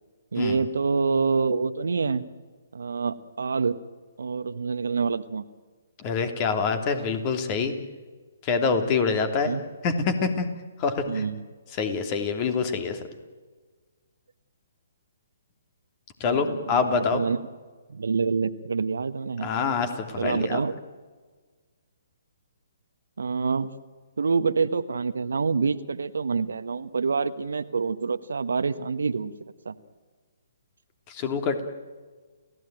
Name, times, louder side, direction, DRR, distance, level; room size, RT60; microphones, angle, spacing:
voice 1, 0.3-2.2 2.7-3.7 4.2-5.4 9.4-9.7 11.1-11.5 16.3-17.4 17.9-19.5 20.2-20.8 23.2-23.7 24.2-29.3 29.6-29.7, right 5 dB, 70° right, 12 dB, 1.3 m, -26 dB
voice 2, 6.0-7.7 8.4-9.5 9.8-10.5 10.8-11.2 11.8-13.0 16.2-17.2 19.4-20.6 31.1-31.6, left 5 dB, 30° left, 8 dB, 3.1 m, -25 dB
30.0 x 16.5 x 9.1 m, 1.4 s
figure-of-eight pair, 135°, 0 cm